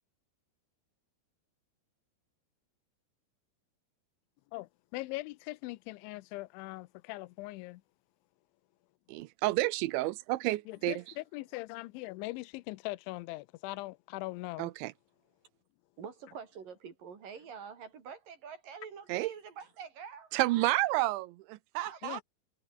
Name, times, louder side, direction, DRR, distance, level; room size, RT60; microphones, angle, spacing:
voice 1, 4.5-7.8 10.7-14.7 22.0-22.2, left 21 dB, 85° left, 3.1 m, -41 dB
voice 2, 9.1-11.0 14.6-14.9 19.1-19.3 20.3-22.2, right 18 dB, 85° right, 3.1 m, -30 dB
voice 3, 16.0-20.7 21.8-22.2, right 6 dB, 50° right, 4.9 m, -47 dB
omnidirectional pair, 5.3 m